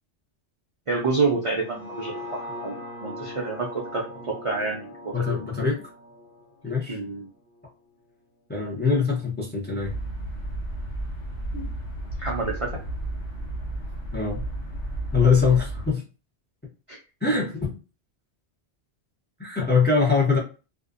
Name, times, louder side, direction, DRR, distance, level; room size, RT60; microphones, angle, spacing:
voice 1, 0.9-5.4 6.9-7.3 12.2-12.7 16.9-17.0, right 3 dB, 45° right, -2 dB, 0.4 m, -28 dB
sound 1, 1.5-7.7 8.1-8.2, left 1 dB, 55° left, 0.9 m, -40 dB
voice 2, 5.1-5.8 6.6-7.0 8.5-9.9 11.5-11.7 14.1-14.4 15.1-16.0 17.2-17.8 19.4-20.4, left 5 dB, 15° left, -2 dB, 0.5 m, -23 dB
sound 2, 9.8-15.9, right 1 dB, 75° left, 1.1 m, -33 dB
2.5 x 2.1 x 2.4 m, 0.34 s
omnidirectional pair, 1.2 m